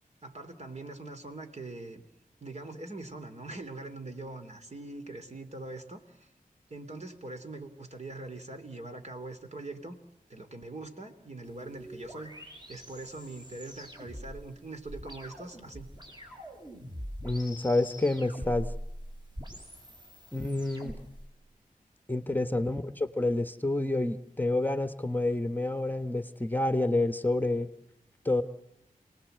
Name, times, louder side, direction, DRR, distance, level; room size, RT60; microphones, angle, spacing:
voice 1, 0.2-2.0 2.4-6.3 6.7-9.9 10.3-12.3 12.7-15.9, right 2 dB, 50° right, 6 dB, 3.1 m, -42 dB
sound 1, 11.4-21.2, equal, 30° right, 6.6 m, -44 dB
voice 2, 17.2-18.7 20.3-21.0 22.1-27.7 28.2-28.4, left 2 dB, 10° left, 9 dB, 1.2 m, -28 dB
29.0 x 19.5 x 8.0 m, 0.88 s
wide cardioid pair, 85°, 15 cm